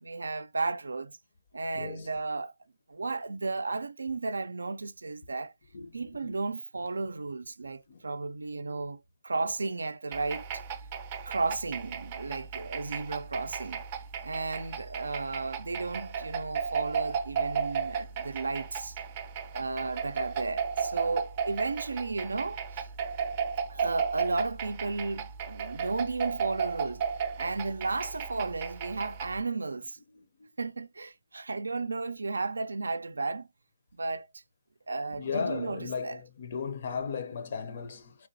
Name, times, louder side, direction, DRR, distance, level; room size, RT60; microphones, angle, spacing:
voice 1, 0.0-1.2 1.5-2.5 2.9-5.5 5.9-10.5 11.3-13.8 14.2-19.0 19.5-22.9 23.7-27.0 27.4-30.0 30.6-33.5 33.9-34.3 34.9-36.2, right 3 dB, 90° right, 0.3 m, -34 dB
voice 2, 1.8-2.1 5.7-5.9 6.2-6.3 7.9-8.0 35.2-38.1, left 6 dB, 45° left, 0.5 m, -35 dB
sound 1, 10.1-29.4, right 6 dB, 25° right, 0.4 m, -35 dB
3.3 x 2.9 x 2.6 m
hypercardioid pair, 160°, 0 cm